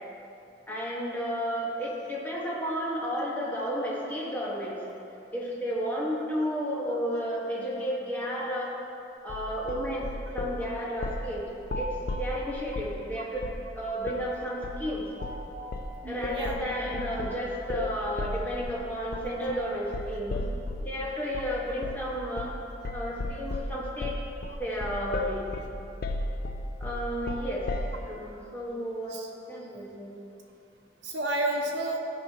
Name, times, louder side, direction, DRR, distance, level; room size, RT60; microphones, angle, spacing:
voice 1, 0.7-4.8 5.3-8.7 9.2-10.1 10.3-11.4 11.7-13.5 13.7-15.1 16.0-20.4 20.8-22.5 22.9-24.1 24.6-25.5 26.8-27.7 28.0-29.2 29.5-30.2, equal, 10° left, -6 dB, 1.4 m, -32 dB
sound 1, 9.3-10.6 11.0-11.3 11.6-13.0 13.4-13.7 14.0-14.3 14.6-14.9 15.2-15.5 15.7-20.9 21.3-21.5 21.8-22.1 22.4-22.6 22.8-28.0, left 2 dB, 55° left, 0.5 m, -34 dB
voice 2, 15.2-16.6 29.1-29.3 31.0-32.0, right 1 dB, 90° right, 0 dB, 0.9 m, -32 dB
13.5 x 5.4 x 2.9 m, 2.8 s
head